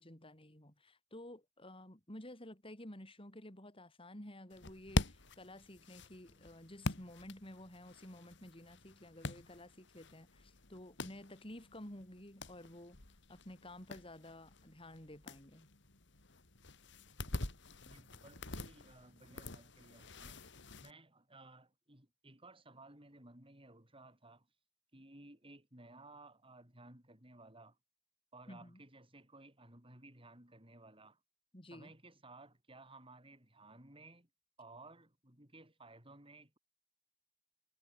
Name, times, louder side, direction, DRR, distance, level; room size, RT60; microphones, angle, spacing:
voice 1, 0.0-13.0 13.3-15.7 28.5-28.8 31.5-31.9, left 1 dB, 30° left, 6.0 m, -52 dB
sound 1, 4.5-20.9, left 2 dB, 65° left, 2.8 m, -45 dB
voice 2, 17.8-20.5 20.8-24.5 24.9-27.8 28.3-31.2 31.7-34.3 34.6-36.6, right 2 dB, 30° right, 7.2 m, -58 dB
head